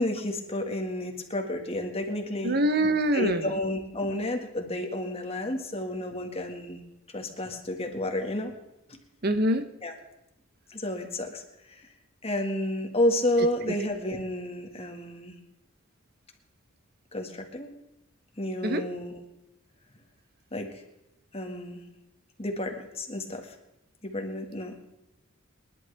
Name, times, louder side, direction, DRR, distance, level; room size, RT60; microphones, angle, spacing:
voice 1, 0.0-2.6 3.1-6.8 7.1-8.5 8.9-9.0 9.8-9.9 10.7-11.9 12.2-15.3 17.1-17.7 18.4-19.2 20.5-20.8 21.3-21.9 22.4-23.6 24.0-24.7, left 1 dB, 30° left, 3 dB, 1.7 m, -31 dB
voice 2, 2.4-3.4 9.2-9.6 18.6-18.8, right 1 dB, 50° right, 9 dB, 0.8 m, -24 dB
28.5 x 11.0 x 3.4 m, 0.93 s
head